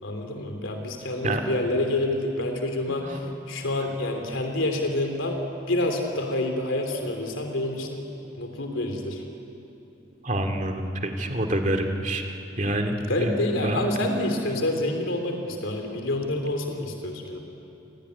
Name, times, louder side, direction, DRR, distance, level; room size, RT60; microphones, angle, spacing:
voice 1, 0.0-5.4 5.7-8.1 8.4-9.2 13.0-17.4, left 1 dB, 80° left, 3 dB, 3.2 m, -28 dB
voice 2, 2.9-3.3 10.2-13.9, right 1 dB, 40° right, 4 dB, 2.2 m, -28 dB
28.5 x 18.5 x 9.6 m, 3.0 s
head